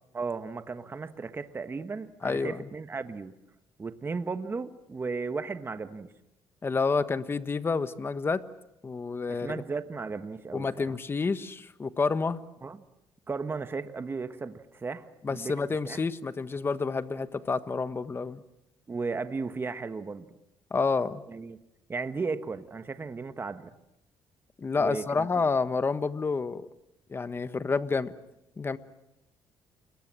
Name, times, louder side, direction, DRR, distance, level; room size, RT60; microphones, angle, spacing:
voice 1, 0.1-3.4 3.8-6.1 9.3-11.0 12.6-12.8 13.3-15.5 15.8-16.0 18.9-20.2 21.3-21.6 21.9-23.7 24.8-25.5, right 4 dB, 25° right, 9 dB, 1.4 m, -35 dB
voice 2, 2.2-2.7 6.6-8.4 8.8-9.6 10.5-12.4 15.2-18.4 20.7-21.2 24.6-26.7 27.1-28.1 28.6-28.8, left 4 dB, 25° left, 12 dB, 1.4 m, -29 dB
29.5 x 22.0 x 7.7 m, 0.86 s
cardioid pair, 100°, 9 cm